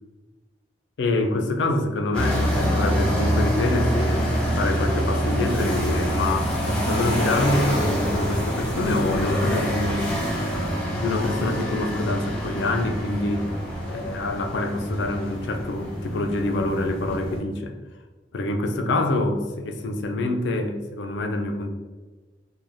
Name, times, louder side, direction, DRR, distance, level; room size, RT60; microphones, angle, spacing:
voice 1, 1.0-4.3 4.5-10.1 10.9-13.5 13.9-17.7 18.3-21.7, left 2 dB, 80° left, 5 dB, 0.4 m, -26 dB
sound 1, 2.1-17.4, equal, 5° left, 0.6 m, -26 dB
2.5 x 2.2 x 3.1 m, 1.3 s
head